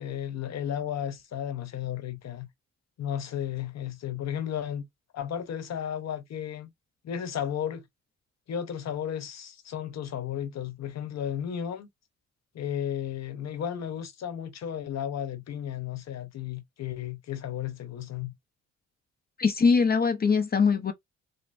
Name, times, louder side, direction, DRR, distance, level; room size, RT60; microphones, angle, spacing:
voice 1, 0.0-2.5 3.0-4.9 5.1-6.7 7.0-7.8 8.5-11.9 12.5-18.3, left 9 dB, 60° left, 1.0 m, -34 dB
voice 2, 19.4-20.9, left 5 dB, 30° left, 0.6 m, -22 dB
5.2 x 2.0 x 2.6 m
cardioid pair, 90°, 30 cm